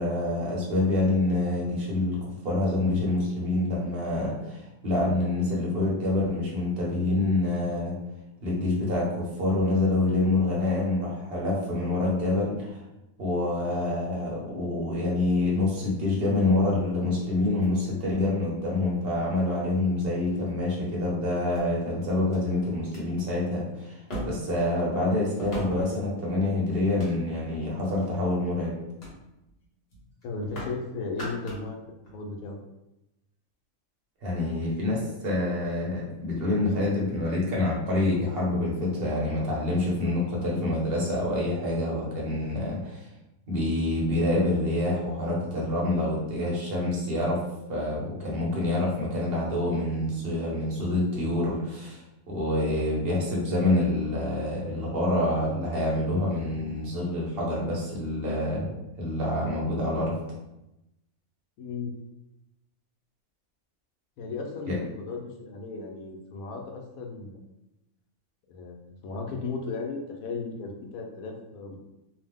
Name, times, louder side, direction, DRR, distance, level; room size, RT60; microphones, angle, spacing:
voice 1, 0.0-8.0 8.4-12.8 13.2-28.8 34.2-43.1 43.5-47.4 47.7-60.2 64.7-64.8, left 2 dB, 50° right, -4 dB, 0.9 m, -27 dB
sound 1, 17.3-18.4 19.3-19.4 20.0-20.6 21.5-21.6 22.3-22.4 22.8-23.0 24.1-24.6 25.4-26.0 26.7-27.5 28.1-28.4 29.0-29.2 29.5-29.7 29.9-30.8 31.1-31.7 32.0-32.2, equal, 50° left, 1.1 m, -39 dB
voice 2, 30.2-31.8 32.1-32.6 61.6-61.9 64.2-67.5 68.5-71.8, left 4 dB, 80° left, 1 dB, 1.0 m, -35 dB
2.8 x 2.0 x 3.5 m, 0.93 s
omnidirectional pair, 1.5 m